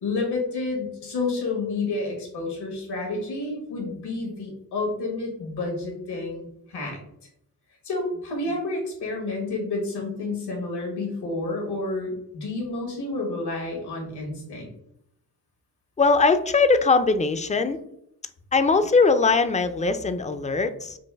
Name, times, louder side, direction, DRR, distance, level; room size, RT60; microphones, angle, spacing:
voice 1, 0.0-7.0 7.8-14.7, left 3 dB, 85° left, 0 dB, 1.5 m, -30 dB
voice 2, 16.0-17.8 18.5-21.0, left 4 dB, 20° left, 10 dB, 0.4 m, -20 dB
5.3 x 2.4 x 3.4 m, 0.76 s
cardioid pair, 60°, 39 cm